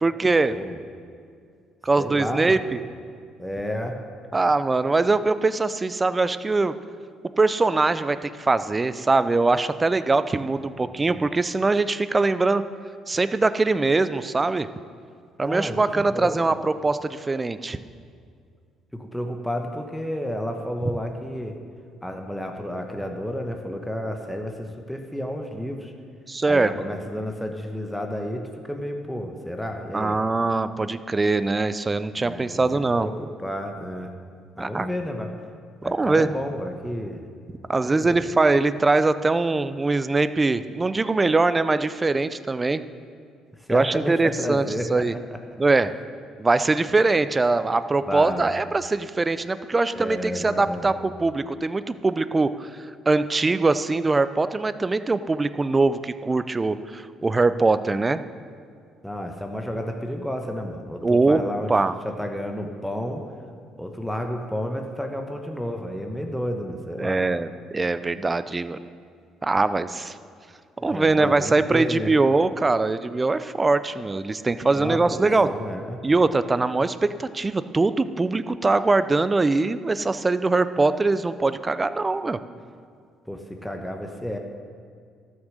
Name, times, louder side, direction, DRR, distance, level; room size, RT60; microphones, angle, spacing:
voice 1, 0.0-0.5 1.8-2.8 4.3-6.7 7.4-12.6 13.1-14.7 15.4-17.8 26.3-26.7 29.9-33.1 34.6-34.9 35.9-36.3 37.7-42.8 43.7-45.1 45.6-45.9 46.4-52.7 53.1-58.2 61.0-61.4 61.7-61.9 67.0-68.8 69.4-70.1 70.8-75.5 76.0-82.4, right 3 dB, 25° right, 13 dB, 0.5 m, -22 dB
voice 2, 2.0-2.6 3.4-4.0 10.6-11.1 15.4-16.6 18.9-21.6 22.0-25.9 26.5-30.2 32.2-32.6 33.0-34.1 34.6-35.3 35.8-37.2 37.8-38.3 43.6-45.0 48.1-48.5 49.9-50.9 59.0-63.2 63.8-67.3 70.8-72.1 74.8-76.0 83.3-84.4, equal, 5° left, 3 dB, 1.1 m, -31 dB
12.5 x 6.4 x 6.4 m, 2.2 s
supercardioid pair, 70°, 0 cm